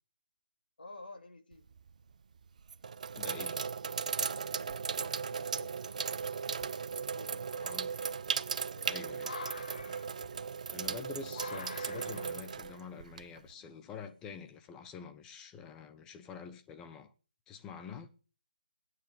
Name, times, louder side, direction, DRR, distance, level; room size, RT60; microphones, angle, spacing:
voice 1, 0.8-1.7 4.9-5.9 7.1-8.1 8.7-9.2, left 2 dB, 80° left, 3.4 m, -52 dB
Sink (filling or washing), 1.5-1.9 2.6-13.5, right 6 dB, 50° right, 0.8 m, -37 dB
voice 2, 3.1-3.6 7.6-7.9 8.8-9.3 10.7-17.1 17.5-18.1, left 6 dB, 10° left, 1.1 m, -47 dB
sound 1, 4.9-5.3 5.9-6.0 6.5-14.5, left 4 dB, 60° left, 1.6 m, -49 dB
18.5 x 9.5 x 7.2 m
figure-of-eight pair, 160°, 5 cm